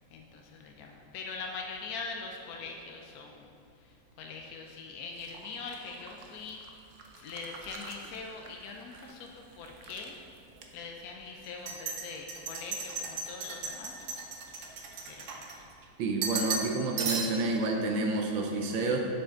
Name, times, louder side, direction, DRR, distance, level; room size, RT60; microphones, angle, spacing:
voice 1, 0.1-3.5 3.8-6.6 7.1-10.1 10.7-14.2 15.1-15.7, left 4 dB, 75° left, 1 dB, 0.8 m, -42 dB
sound 1, 5.2-9.1 9.4-10.1 10.6-10.7 11.4-15.8 16.2-16.7 17.0-17.6, right 4 dB, 90° right, 0.6 m, -38 dB
voice 2, 16.0-19.0, right 2 dB, 75° right, 2 dB, 1.4 m, -29 dB
7.3 x 7.0 x 3.7 m, 2.5 s
omnidirectional pair, 2.2 m